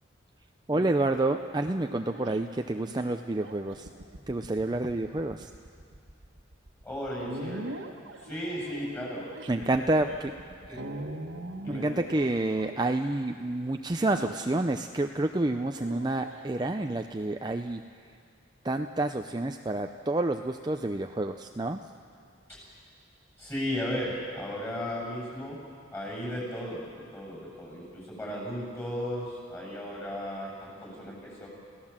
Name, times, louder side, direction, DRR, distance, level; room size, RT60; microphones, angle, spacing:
voice 1, 0.7-3.9 4.3-5.5 9.5-10.3 10.7-10.8 11.7-17.8 18.6-21.8, right 2 dB, 20° right, 6 dB, 0.5 m, -29 dB
sound 1, 0.7-13.3 14.2-14.8 15.6-17.1 18.7-20.0, right 1 dB, 80° right, 1.4 m, -43 dB
voice 2, 6.8-7.7 8.2-9.7 10.7-11.0 11.6-12.0 23.4-25.6 25.9-31.5, equal, 15° left, -3 dB, 7.9 m, -35 dB
30.0 x 17.0 x 7.4 m, 2.3 s
head